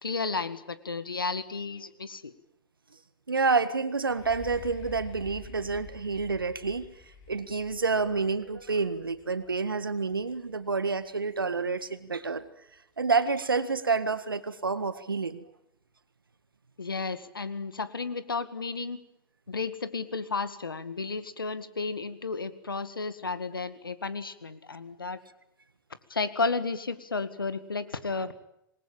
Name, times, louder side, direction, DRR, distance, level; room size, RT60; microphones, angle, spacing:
voice 1, 0.0-2.3 16.8-19.0 19.5-25.2 26.1-28.3, left 4 dB, 90° left, 12 dB, 2.0 m, -33 dB
voice 2, 3.3-6.9 7.3-12.5 13.0-15.5, right 4 dB, 90° right, 13 dB, 1.7 m, -28 dB
sound 1, 4.0-11.8 12.4-12.5, left 4 dB, 50° left, 6.3 m, -49 dB
27.0 x 20.5 x 9.0 m, 0.80 s
figure-of-eight pair, 90°, 11 cm